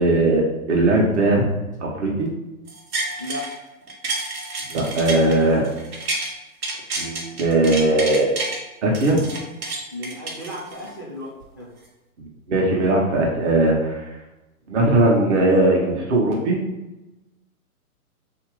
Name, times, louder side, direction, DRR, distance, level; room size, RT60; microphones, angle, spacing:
voice 1, 0.0-1.5 1.8-2.3 4.7-5.7 7.0-8.3 8.8-9.2 12.2-14.1 14.7-16.6, right 2 dB, 50° right, -1 dB, 1.1 m, -19 dB
sound 1, 2.7-3.5 3.9-6.3 6.6-8.6 8.9-10.9 11.4-11.5, right 2 dB, 85° right, 1.4 m, -29 dB
voice 2, 3.2-3.5 9.9-11.7, left 1 dB, 15° right, -5 dB, 0.3 m, -34 dB
3.7 x 2.8 x 4.7 m, 1.0 s
hypercardioid pair, 145°, 44 cm